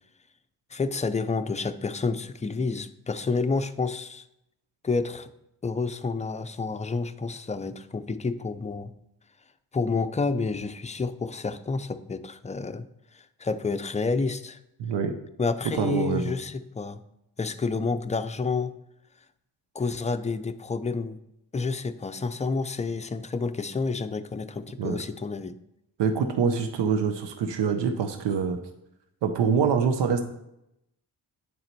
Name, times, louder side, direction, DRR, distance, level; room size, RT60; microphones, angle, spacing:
voice 1, 0.7-4.2 4.8-5.3 5.6-8.9 9.7-12.9 13.1-14.6 15.4-17.0 17.4-18.7 19.7-21.2 21.5-25.5, left 4 dB, 15° left, 10 dB, 0.5 m, -29 dB
voice 2, 14.8-15.1 15.8-16.3 24.8-25.0 26.0-28.6 29.2-30.2, right 6 dB, 85° right, 7 dB, 0.7 m, -25 dB
8.4 x 3.9 x 4.5 m, 0.83 s
supercardioid pair, 50°, 41 cm